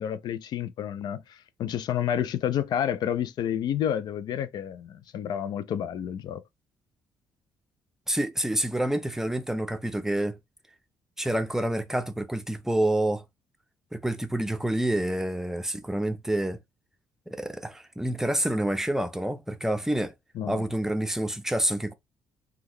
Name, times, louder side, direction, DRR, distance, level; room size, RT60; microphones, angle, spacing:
voice 1, 0.0-6.4 20.4-20.6, left 9 dB, 65° left, 0.4 m, -30 dB
voice 2, 8.1-10.4 11.2-13.2 13.9-16.6 17.3-20.1 20.5-21.9, right 1 dB, 5° right, 0.6 m, -28 dB
3.7 x 2.2 x 3.1 m
cardioid pair, 80°, 8 cm